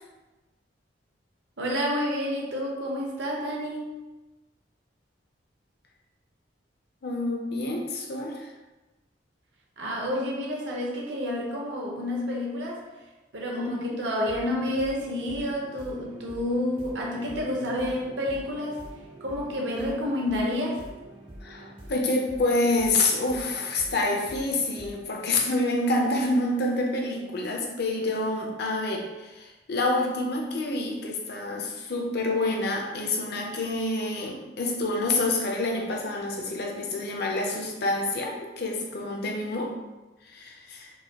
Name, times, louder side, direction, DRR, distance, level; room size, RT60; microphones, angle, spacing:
voice 1, 1.6-3.9 9.8-12.9 13.3-18.8 19.2-20.8, left 1 dB, 70° right, -2 dB, 0.8 m, -29 dB
voice 2, 7.0-8.5 13.5-13.9 21.4-39.8 40.3-40.9, left 2 dB, 60° left, 1 dB, 0.6 m, -27 dB
sound 1, 14.3-24.9, right 1 dB, 30° right, 0.6 m, -46 dB
4.6 x 2.3 x 2.9 m, 1.1 s
head